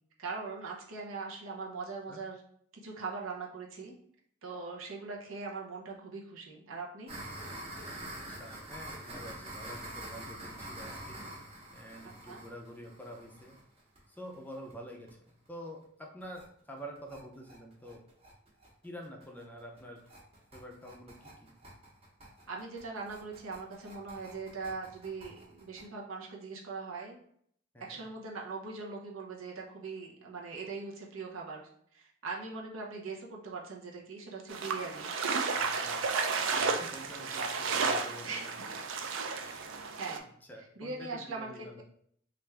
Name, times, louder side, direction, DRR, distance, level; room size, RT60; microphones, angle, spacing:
voice 1, 0.2-2.4 2.8-3.9 4.4-7.1 12.2-12.4 22.5-27.2 27.8-35.1 38.2-38.8 40.0-40.2 40.8-41.7, right 4 dB, 85° right, -2 dB, 0.7 m, -41 dB
sound 1, 7.1-14.7 15.1-15.2 15.5-15.6 15.8-15.9 16.2-16.4 16.8-25.9, right 1 dB, 30° right, 0.9 m, -46 dB
voice 2, 8.1-11.2 11.7-13.6 14.1-15.1 15.5-18.0 18.8-20.0 20.5-21.5 27.7-28.0 35.5-36.1 36.5-38.9 39.4-39.6 40.5-41.8, equal, 10° left, 1 dB, 0.4 m, -48 dB
sound 2, 34.5-40.2, right 4 dB, 65° right, 0.4 m, -32 dB
3.4 x 2.4 x 3.2 m, 0.65 s
head